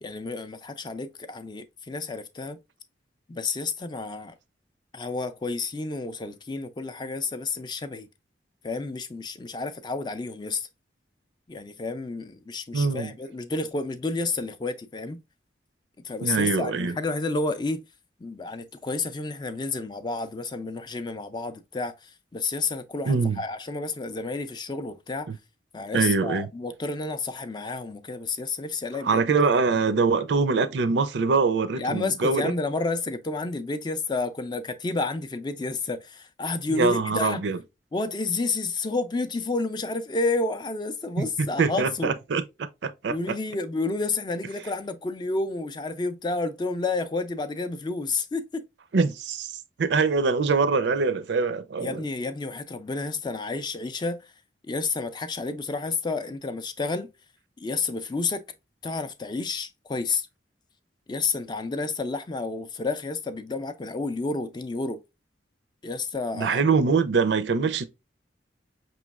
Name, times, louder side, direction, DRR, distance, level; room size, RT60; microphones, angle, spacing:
voice 1, 0.0-2.6 3.3-4.3 4.9-8.1 8.6-10.7 11.5-15.2 16.0-17.8 18.2-25.3 25.7-29.2 29.9-30.0 31.7-37.4 37.9-42.1 43.1-48.6 51.8-54.2 54.6-57.1 57.6-58.4 58.8-60.3 61.1-65.0 65.8-66.6, left 3 dB, 25° left, 0.3 m, -30 dB
voice 2, 12.7-13.1 16.2-17.0 23.0-23.4 25.3-25.4 25.9-26.5 29.0-32.5 36.7-37.6 41.2-42.4 42.8-43.4 48.9-52.0 66.3-67.9, right 4 dB, 70° right, 0.5 m, -24 dB
5.1 x 3.0 x 2.3 m
head